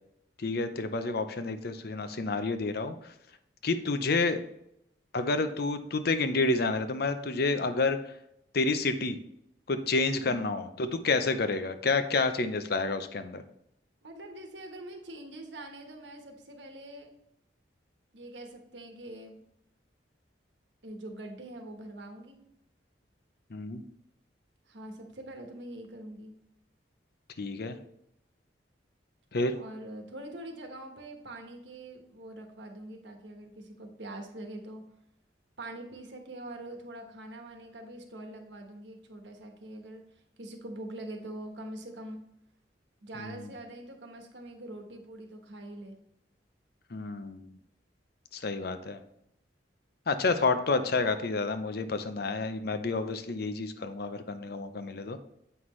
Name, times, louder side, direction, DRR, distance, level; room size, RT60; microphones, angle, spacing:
voice 1, 0.4-2.9 3.6-4.4 5.1-8.0 8.5-9.2 9.7-13.4 23.5-23.8 27.4-27.8 29.3-29.5 43.2-43.5 46.9-47.5 48.3-49.0 50.1-55.2, left 3 dB, 60° left, 10 dB, 0.6 m, -29 dB
voice 2, 10.1-10.5 14.0-17.1 18.1-19.4 20.8-22.4 24.7-26.4 29.5-34.8 35.6-40.0 40.4-42.2 43.0-46.0, right 1 dB, 80° right, 3 dB, 1.3 m, -44 dB
7.9 x 5.7 x 3.2 m, 0.78 s
head